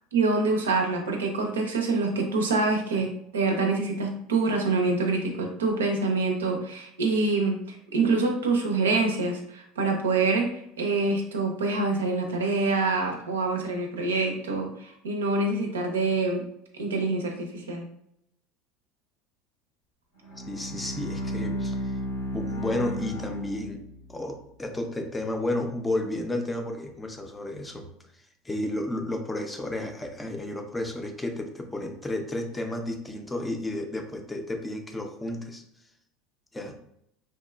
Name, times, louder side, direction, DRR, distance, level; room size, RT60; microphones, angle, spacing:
voice 1, 0.1-16.5 16.7-17.8, right 3 dB, 80° right, 2 dB, 0.5 m, -26 dB
Bowed string instrument, 20.2-24.3, equal, 80° left, 0.9 m, -33 dB
voice 2, 20.5-21.9 22.3-23.8 24.1-27.9 28.4-35.6 36.5-36.8, left 1 dB, 15° left, 4 dB, 0.5 m, -32 dB
2.8 x 2.2 x 2.2 m, 0.73 s
hypercardioid pair, 75°, 0 cm